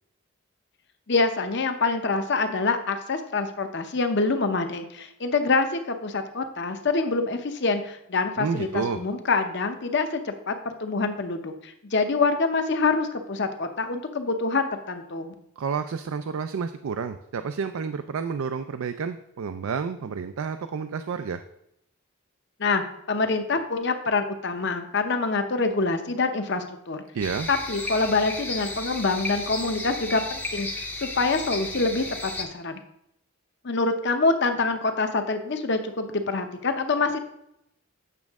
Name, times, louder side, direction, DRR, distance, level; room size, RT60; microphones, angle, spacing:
voice 1, 1.1-10.5 10.8-15.3 22.6-27.0 27.5-30.7 30.9-32.8 33.6-37.2, left 3 dB, 50° left, 7 dB, 0.8 m, -26 dB
voice 2, 8.4-9.0 15.6-21.4 27.1-27.5, right 5 dB, 70° right, 9 dB, 0.4 m, -30 dB
sound 1, 27.2-32.4, left 2 dB, 10° left, 0.6 m, -34 dB
8.4 x 6.3 x 3.5 m, 0.79 s
head